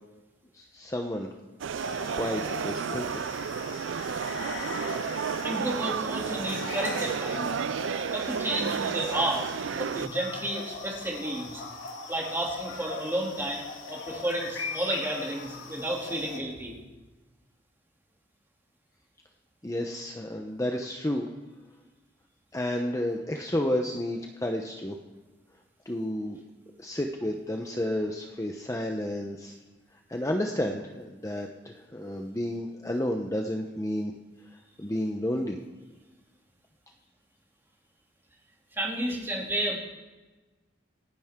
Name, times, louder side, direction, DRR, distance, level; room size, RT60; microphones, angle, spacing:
voice 1, 0.5-1.3 2.2-3.2 19.6-21.3 22.5-25.0 25.9-26.4 26.8-29.5 30.1-34.1 34.8-35.6, left 1 dB, 15° left, 3 dB, 0.8 m, -31 dB
sound 1, 1.6-10.1, right 7 dB, 85° right, 0.4 m, -32 dB
sound 2, 1.7-16.4, left 3 dB, 90° left, 2.7 m, -40 dB
voice 2, 5.4-7.6 8.1-11.6 12.1-16.8 38.7-39.8, right 1 dB, 10° right, -2 dB, 2.8 m, -32 dB
27.0 x 10.5 x 3.7 m, 1.2 s
head